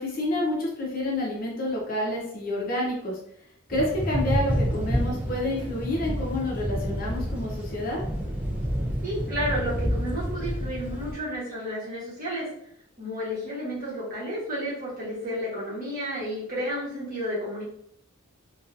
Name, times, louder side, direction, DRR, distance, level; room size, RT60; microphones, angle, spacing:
voice 1, 0.0-3.2 3.7-8.0, left 1 dB, 40° left, -2 dB, 0.6 m, -29 dB
Thunder / Rain, 3.7-11.1, equal, 5° right, 0.3 m, -29 dB
voice 2, 9.0-12.4 13.0-17.6, equal, 40° right, -7 dB, 1.1 m, -31 dB
2.6 x 2.3 x 2.4 m, 0.71 s
head